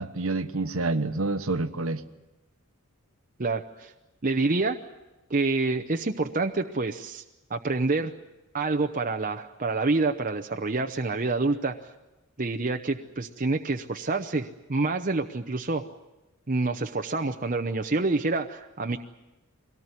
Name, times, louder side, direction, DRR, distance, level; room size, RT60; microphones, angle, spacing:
voice 1, 0.0-2.0, right 2 dB, 65° right, 10 dB, 1.2 m, -28 dB
voice 2, 3.4-3.9 4.2-4.8 5.3-7.2 7.5-8.1 8.5-11.7 12.4-15.8 16.5-19.0, right 3 dB, 35° right, 4 dB, 0.8 m, -27 dB
23.5 x 18.5 x 9.7 m, 1.0 s
head